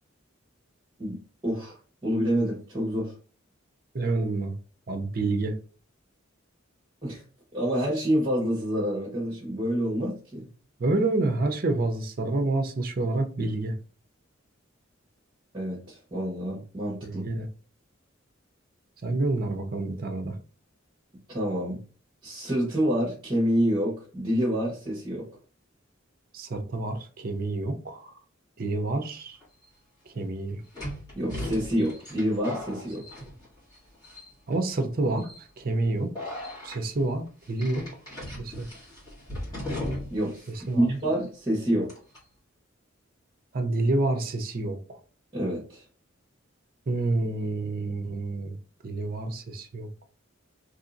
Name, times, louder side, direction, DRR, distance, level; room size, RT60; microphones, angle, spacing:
voice 1, 1.4-1.7 2.0-3.1 7.0-7.2 7.5-10.5 15.5-17.2 21.3-21.8 22.2-25.3 31.1-33.0 40.1-40.5 40.7-41.9 45.3-45.8, equal, 25° right, 1.0 m, -27 dB
voice 2, 3.9-4.5 4.9-5.5 10.8-13.7 17.0-17.5 19.0-20.4 26.3-28.1 28.6-29.4 30.1-30.6 33.2-33.3 34.5-35.2 35.6-36.1 36.6-37.8 38.4-38.7 40.7-41.0 43.5-44.8 46.9-48.5 48.8-49.9, right 2 dB, 45° right, 0.5 m, -28 dB
sound 1, 29.4-29.5 30.7-33.7 34.0-34.5 35.2-35.4 36.1-36.8 37.6-40.3 40.6-40.7 41.9-42.2, left 1 dB, 20° left, 1.5 m, -37 dB
3.1 x 2.7 x 2.5 m
head